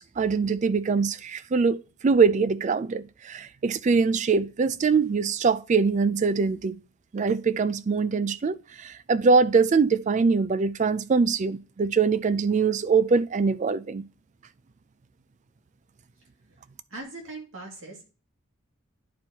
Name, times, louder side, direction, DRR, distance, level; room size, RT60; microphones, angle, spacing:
voice 1, 0.0-6.7 7.1-14.0, right 5 dB, 35° right, 0.3 m, -23 dB
voice 2, 16.9-18.1, right 2 dB, 85° right, 2.2 m, -40 dB
10.5 x 4.5 x 2.9 m
head